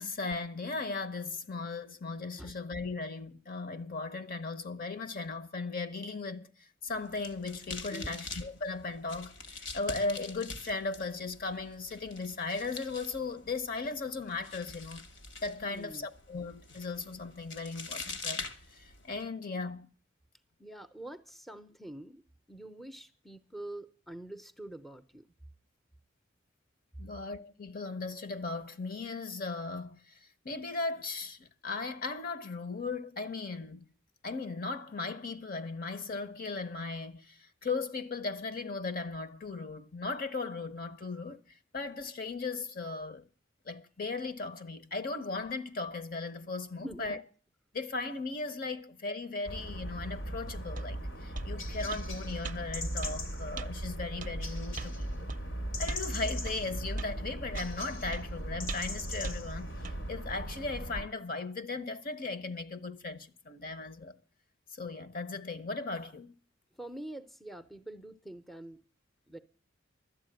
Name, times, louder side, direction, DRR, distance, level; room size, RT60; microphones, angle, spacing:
voice 1, 0.0-15.1 15.4-19.9 27.0-30.2 30.4-33.9 34.2-41.4 41.7-43.3 43.7-47.2 47.7-55.3 55.8-59.7 60.1-64.2 64.7-66.3, left 3 dB, 50° left, 0.9 m, -37 dB
sound 1, 6.9-19.2, left 4 dB, 70° left, 1.6 m, -45 dB
voice 2, 15.6-16.1 20.6-22.2 22.5-25.3 46.8-47.2 66.7-68.8 69.3-69.4, right 1 dB, ahead, 0.6 m, -45 dB
sound 2, 49.5-61.0, equal, 85° left, 2.6 m, -38 dB
sound 3, 50.8-50.9 51.3-51.5 51.9-52.1 52.4-52.6 53.0-53.2 53.6-53.7 54.2-54.3 54.8-54.9 55.3-55.4 55.9-56.1 56.4-56.6 57.0-57.1 57.5-57.7 58.1-58.2 58.7-58.9 59.2-59.4 59.8-60.0, right 3 dB, 45° right, 0.5 m, -39 dB
12.5 x 8.1 x 9.0 m
head